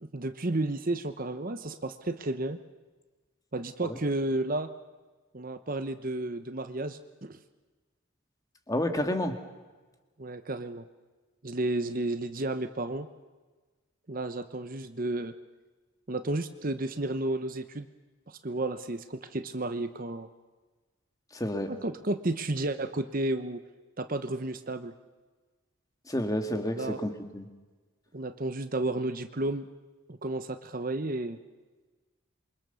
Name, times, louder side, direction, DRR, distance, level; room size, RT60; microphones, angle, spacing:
voice 1, 0.0-2.6 3.5-4.7 5.3-7.4 10.2-10.8 11.4-13.1 14.1-15.3 16.1-17.9 18.3-20.3 21.7-23.6 24.0-24.9 26.5-27.0 28.1-29.7 30.1-31.4, right 2 dB, 40° right, 10 dB, 1.0 m, -32 dB
voice 2, 8.7-9.4 21.3-21.7 26.1-27.5, left 1 dB, 15° left, 6 dB, 2.0 m, -30 dB
27.5 x 24.0 x 7.0 m, 1.3 s
head